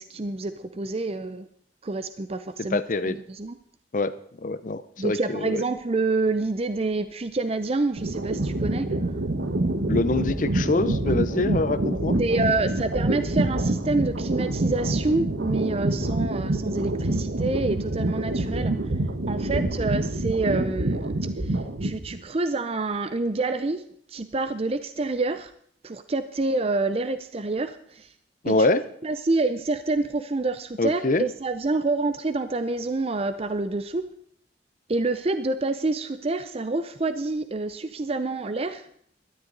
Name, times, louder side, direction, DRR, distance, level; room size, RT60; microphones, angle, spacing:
voice 1, 0.0-1.5 1.8-3.6 5.0-8.9 12.2-18.7 19.3-21.1 21.5-23.8 24.1-25.5 25.8-28.1 28.5-28.6 29.0-34.0 34.9-38.9, right 3 dB, 35° right, 11 dB, 0.6 m, -27 dB
voice 2, 2.7-3.2 3.9-4.1 4.4-5.6 9.9-12.2 28.4-28.8 30.8-31.2, left 2 dB, 50° left, 14 dB, 0.6 m, -24 dB
sound 1, 8.0-22.2, right 2 dB, 80° right, 1.2 m, -26 dB
18.0 x 12.5 x 3.9 m, 0.65 s
head